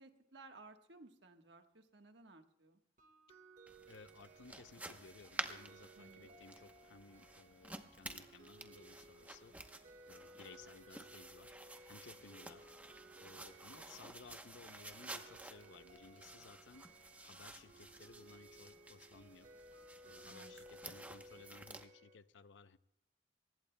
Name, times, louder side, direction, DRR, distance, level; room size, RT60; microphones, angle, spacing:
voice 1, 0.0-2.8 6.0-6.3 10.2-10.3 20.2-20.5, right 3 dB, 65° right, 5 dB, 1.3 m, -59 dB
sound 1, 3.0-22.2, right 2 dB, 45° right, 1.8 m, -60 dB
sound 2, 3.7-21.9, right 2 dB, 10° right, 0.8 m, -52 dB
voice 2, 3.9-9.6 10.1-11.6 11.8-12.7 13.2-16.9 17.2-19.5 20.0-22.8, left 4 dB, 75° left, 13 dB, 0.6 m, -59 dB
23.5 x 19.5 x 2.2 m, 0.87 s
head